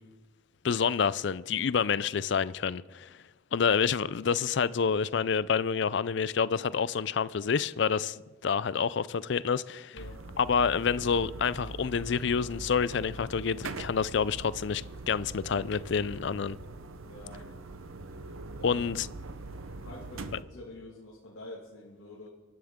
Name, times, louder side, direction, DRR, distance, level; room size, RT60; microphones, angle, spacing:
voice 1, 0.6-3.1 3.5-10.0 10.4-16.6 18.6-19.1, left 6 dB, 60° left, 0.4 m, -28 dB
sound 1, 10.0-20.4, right 2 dB, 85° right, 0.8 m, -42 dB
voice 2, 17.0-17.4 18.5-19.2 19.8-22.3, left 1 dB, 85° left, 2.2 m, -47 dB
25.0 x 11.0 x 3.7 m
head